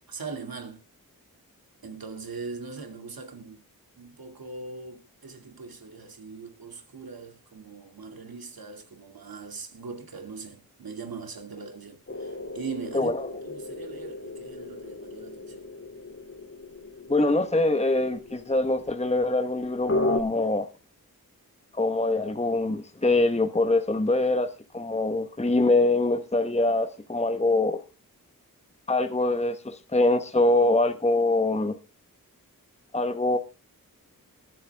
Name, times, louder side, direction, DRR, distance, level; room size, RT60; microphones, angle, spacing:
voice 1, 0.1-0.8 1.8-3.6 4.0-13.1 13.4-15.7, right 4 dB, 75° right, 2.5 m, -40 dB
sound 1, 12.1-20.2, left 2 dB, 40° left, 3.0 m, -35 dB
voice 2, 17.1-20.7 21.7-27.8 28.9-31.8 32.9-33.4, left 2 dB, 20° left, 1.2 m, -24 dB
21.0 x 8.5 x 3.5 m
cardioid pair, 50°, 36 cm